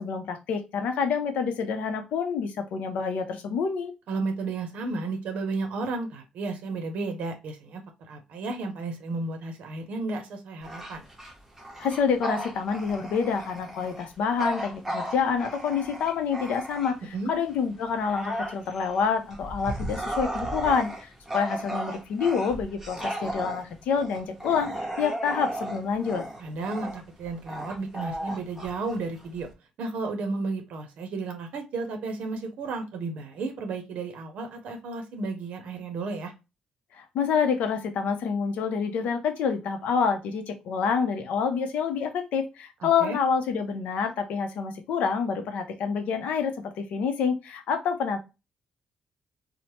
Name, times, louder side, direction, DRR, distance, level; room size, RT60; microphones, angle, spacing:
voice 1, 0.0-3.9 11.8-24.7 25.0-26.2 37.0-48.2, left 6 dB, 85° left, 7 dB, 0.5 m, -27 dB
voice 2, 4.1-7.8 8.1-11.0 17.1-17.3 26.4-29.5 29.8-36.3 42.8-43.2, right 3 dB, 75° right, 5 dB, 0.6 m, -33 dB
Bark / Growling, 10.6-17.2 17.6-29.5, right 1 dB, 10° right, 0.7 m, -35 dB
3.1 x 2.0 x 2.8 m, 0.27 s
cardioid pair, 110°, 2 cm